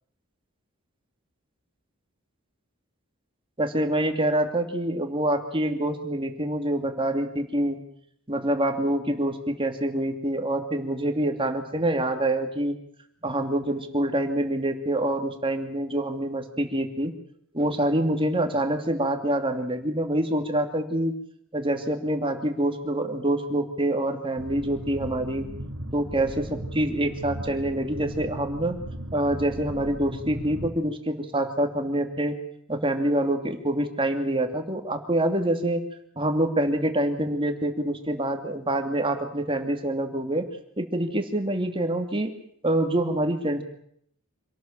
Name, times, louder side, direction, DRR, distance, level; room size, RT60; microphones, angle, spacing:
voice 1, 3.6-7.8 8.3-12.7 13.2-17.1 17.5-21.1 21.5-25.5 25.9-28.8 29.1-32.4 32.7-35.8 36.2-40.5 40.8-42.3 42.6-43.6, right 1 dB, 25° right, 5 dB, 2.7 m, -26 dB
sound 1, 24.4-30.7, right 1 dB, 65° right, 2.5 m, -37 dB
26.5 x 18.0 x 7.5 m, 0.68 s
head